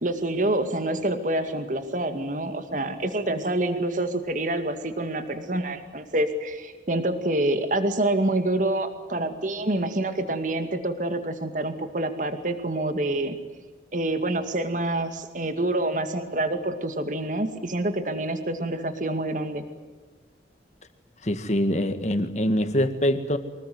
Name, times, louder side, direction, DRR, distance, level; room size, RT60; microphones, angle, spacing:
voice 1, 0.0-13.4 13.9-19.6, right 1 dB, 45° right, 8 dB, 2.3 m, -27 dB
voice 2, 21.2-23.4, equal, 40° left, 9 dB, 1.9 m, -24 dB
24.5 x 21.0 x 9.5 m, 1.3 s
head